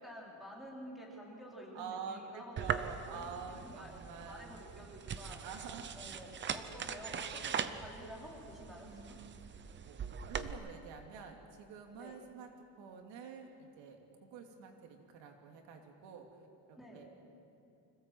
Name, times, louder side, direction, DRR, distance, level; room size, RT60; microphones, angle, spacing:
voice 1, 0.0-3.9 4.2-5.4 5.9-9.2 11.9-12.2 16.7-17.1, equal, ahead, -4 dB, 3.9 m, -50 dB
voice 2, 1.7-4.6 5.4-6.2 8.8-12.5 12.8-16.3 16.7-17.1, right 6 dB, 80° right, 3 dB, 2.7 m, -48 dB
sound 1, 2.6-10.5, right 7 dB, 25° right, 0.6 m, -41 dB
25.5 x 16.5 x 7.8 m, 2.7 s
cardioid pair, 180°, 43 cm